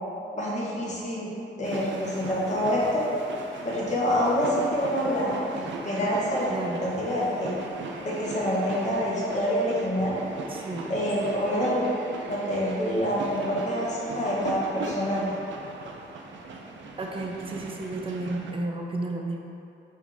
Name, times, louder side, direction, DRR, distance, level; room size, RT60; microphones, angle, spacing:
voice 1, 0.3-1.3 1.6-3.0 3.6-6.5 6.8-7.5 8.0-10.2 10.9-11.9 12.3-15.2, equal, 40° left, -6 dB, 1.1 m, -26 dB
sound 1, 1.6-18.5, right 3 dB, 80° right, 0.5 m, -39 dB
voice 2, 6.5-6.8 10.5-10.9 17.0-19.4, right 2 dB, 30° right, 1 dB, 0.5 m, -32 dB
4.9 x 2.6 x 3.9 m, 2.7 s
cardioid pair, 85°, 19 cm